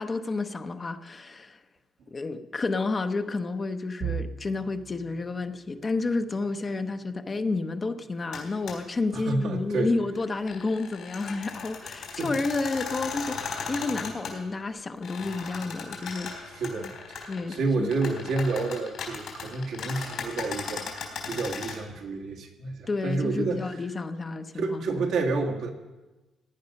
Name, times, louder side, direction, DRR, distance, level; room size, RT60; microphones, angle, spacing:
voice 1, 0.0-1.6 2.1-16.3 17.3-17.9 22.9-25.0, left 3 dB, 30° left, 8 dB, 0.8 m, -30 dB
sound 1, 4.0-15.8 16.3-16.5 16.9-17.1 17.9-18.4, right 8 dB, 55° right, 0.5 m, -45 dB
sound 2, 8.3-8.4 8.7-8.8 10.3-14.3 15.0-17.6 17.8-21.7, left 6 dB, 75° left, 3.9 m, -37 dB
voice 2, 9.1-9.9 12.0-12.4 16.5-20.8 21.3-23.6 24.5-25.7, right 3 dB, 80° right, 1 dB, 1.8 m, -29 dB
17.5 x 9.6 x 5.4 m, 1.2 s
cardioid pair, 90°, 0 cm